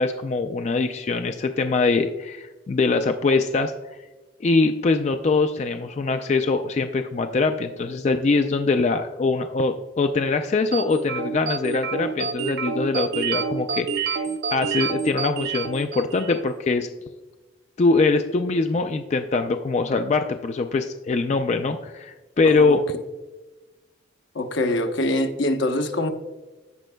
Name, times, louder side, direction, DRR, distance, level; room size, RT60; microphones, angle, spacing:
voice 1, 0.0-3.7 4.4-16.9 17.8-22.8, left 3 dB, 35° left, 7 dB, 0.3 m, -23 dB
sound 1, 10.7-16.5, right 5 dB, 55° right, 0.5 m, -28 dB
voice 2, 22.4-22.8 24.3-26.1, left 1 dB, 80° left, 6 dB, 0.8 m, -24 dB
15.0 x 5.2 x 2.2 m, 1.2 s
head